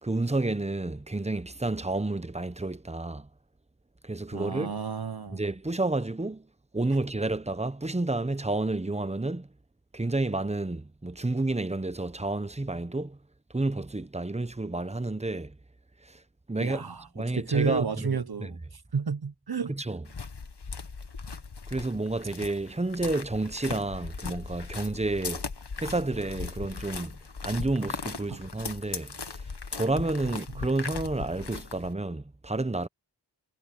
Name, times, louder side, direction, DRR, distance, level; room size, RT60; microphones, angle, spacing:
voice 1, 0.0-3.3 4.0-4.7 5.3-6.5 6.7-9.5 9.9-13.2 13.5-15.6 16.0-16.2 16.5-16.8 17.2-18.6 19.7-20.0 21.7-25.4 25.8-29.4 29.7-32.9, right 2 dB, 15° right, 0.9 m, -30 dB
voice 2, 4.3-5.5 16.6-19.7 28.3-28.4, right 5 dB, 60° right, 1.0 m, -31 dB
sound 1, 20.1-31.9, left 4 dB, 75° left, 1.5 m, -38 dB
wide cardioid pair, 45°, 41 cm